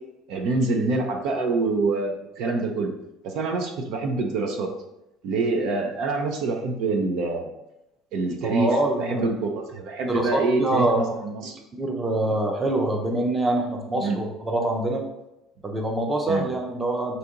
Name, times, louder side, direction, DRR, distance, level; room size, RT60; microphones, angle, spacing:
voice 1, 0.3-2.9 3.2-4.7 5.2-7.5 8.1-11.5 14.0-14.2 16.3-16.5, right 3 dB, 65° right, 4 dB, 0.6 m, -26 dB
voice 2, 8.4-9.3 10.1-11.0 11.8-15.0 15.6-17.2, right 1 dB, 15° right, 2 dB, 0.6 m, -25 dB
4.1 x 2.8 x 3.6 m, 0.90 s
cardioid pair, 125°, 0 cm